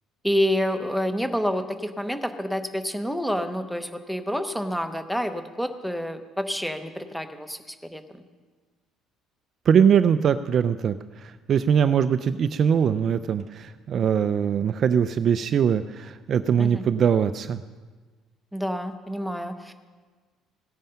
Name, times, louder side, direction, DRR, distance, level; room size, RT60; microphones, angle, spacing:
voice 1, 0.2-8.0 16.6-16.8 18.5-19.7, equal, ahead, 8 dB, 0.8 m, -28 dB
voice 2, 9.7-17.6, right 7 dB, 35° right, 12 dB, 0.4 m, -22 dB
17.0 x 9.2 x 5.6 m, 1.4 s
cardioid pair, 170°, 0 cm